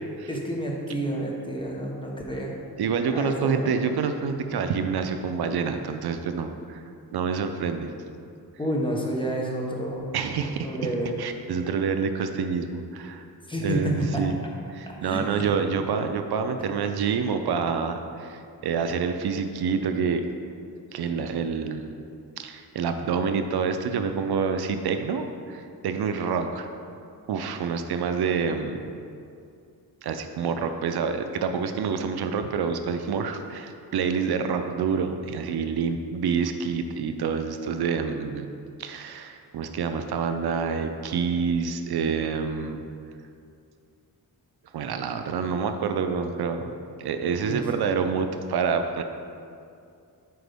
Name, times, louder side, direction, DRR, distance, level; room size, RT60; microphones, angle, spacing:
voice 1, 0.3-2.5 3.1-3.8 8.6-10.1 10.4-11.1 13.5-14.2 14.9-15.5 47.5-47.7, right 1 dB, 15° left, -2 dB, 0.9 m, -30 dB
voice 2, 2.8-6.8 7.1-7.9 10.1-10.7 11.2-13.2 13.6-14.4 14.7-20.2 20.9-21.9 22.4-26.7 27.3-28.8 30.0-38.5 38.8-42.8 44.7-46.7 47.0-49.0, right 6 dB, 75° right, 7 dB, 0.5 m, -27 dB
7.8 x 5.1 x 3.5 m, 2.4 s
wide cardioid pair, 135°, 39 cm